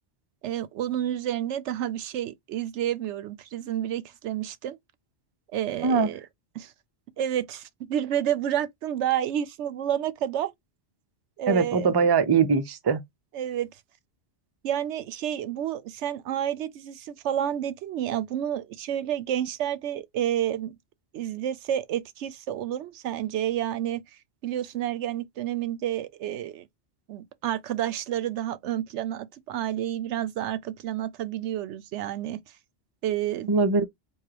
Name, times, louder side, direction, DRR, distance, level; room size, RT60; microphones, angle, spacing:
voice 1, 0.4-4.8 5.5-6.2 6.5-6.7 7.2-10.5 11.4-11.9 13.3-13.7 14.6-20.7 21.1-24.0 24.4-26.7 27.1-32.4 33.0-33.5, right 11 dB, 85° right, 0.9 m, -30 dB
voice 2, 11.5-13.0 33.5-33.8, right 5 dB, 30° right, 0.5 m, -21 dB
4.8 x 2.4 x 2.9 m
omnidirectional pair, 1.2 m